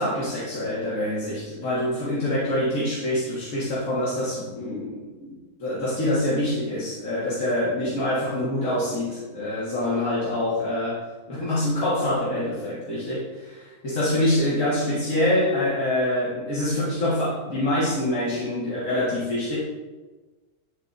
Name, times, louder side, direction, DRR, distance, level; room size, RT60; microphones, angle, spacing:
voice 1, 0.0-5.3 5.6-11.0 11.3-19.6, left 1 dB, 65° left, -9 dB, 2.0 m, -25 dB
10.0 x 4.0 x 2.5 m, 1.2 s
omnidirectional pair, 1.5 m